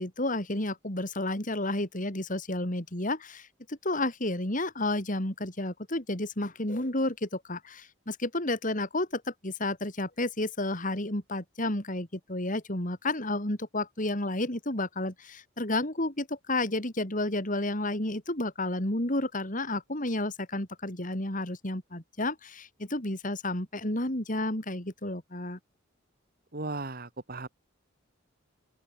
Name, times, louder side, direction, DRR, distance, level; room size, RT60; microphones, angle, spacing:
voice 1, 0.0-25.6, left 2 dB, 40° left, 4.1 m, -31 dB
voice 2, 26.5-27.5, right 2 dB, 50° right, 2.0 m, -36 dB
open air
head